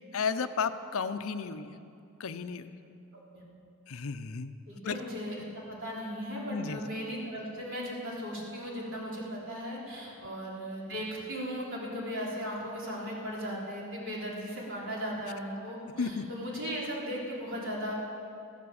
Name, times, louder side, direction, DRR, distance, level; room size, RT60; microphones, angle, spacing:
voice 1, 0.1-1.8 2.2-2.7 3.9-4.6 4.8-5.0 6.5-6.8 16.0-16.3, left 5 dB, 65° left, 11 dB, 0.6 m, -33 dB
voice 2, 4.7-17.9, equal, 60° right, -5 dB, 4.1 m, -37 dB
14.5 x 12.5 x 7.1 m, 2.7 s
head